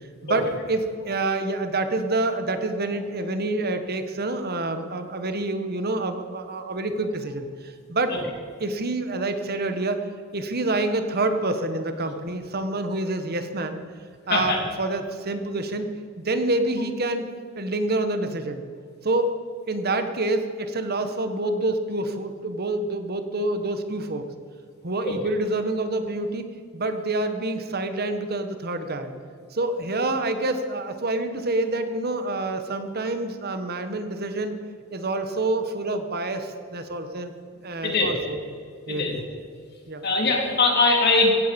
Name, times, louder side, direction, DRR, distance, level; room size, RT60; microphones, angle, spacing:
voice 1, 0.2-8.2 8.6-10.0 10.3-13.8 14.3-15.9 16.2-17.3 17.6-18.6 19.0-19.4 19.7-24.3 24.8-26.5 26.7-29.1 29.5-34.6 34.9-37.3 37.6-38.4 38.9-39.1 39.9-40.0, right 2 dB, 50° right, 8 dB, 1.4 m, -27 dB
voice 2, 40.0-41.3, left 3 dB, 50° left, 0 dB, 3.5 m, -21 dB
16.5 x 16.0 x 5.4 m, 2.1 s
head